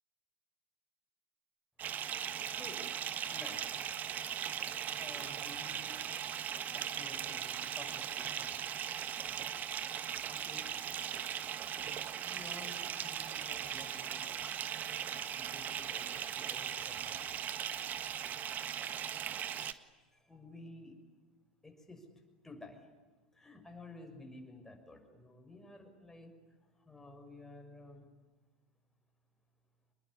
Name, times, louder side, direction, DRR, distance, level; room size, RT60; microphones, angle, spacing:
Bathtub (filling or washing) / Fill (with liquid), 1.8-19.7, right 9 dB, 35° right, 1.6 m, -39 dB
voice 1, 2.5-2.8 3.3-3.8 5.0-5.9 6.7-9.0 10.3-10.7 12.2-14.4 15.3-17.3 20.0-21.0 21.6-22.1 22.4-22.9 23.3-26.3 26.8-28.0, left 2 dB, 10° left, 3 dB, 6.5 m, -53 dB
27.0 x 21.5 x 10.0 m, 1.3 s
figure-of-eight pair, 85°, 5 cm